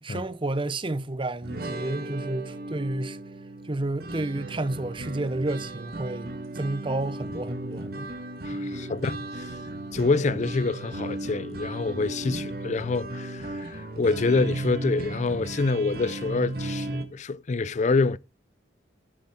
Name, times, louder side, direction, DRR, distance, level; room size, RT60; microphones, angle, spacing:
voice 1, 0.0-3.2 3.6-8.1 8.5-8.7, right 2 dB, 30° right, 0.7 m, -31 dB
sound 1, 1.4-17.0, right 2 dB, 55° right, 1.6 m, -35 dB
voice 2, 8.4-9.5 9.9-18.2, left 3 dB, 40° left, 0.4 m, -26 dB
11.5 x 7.2 x 4.4 m
head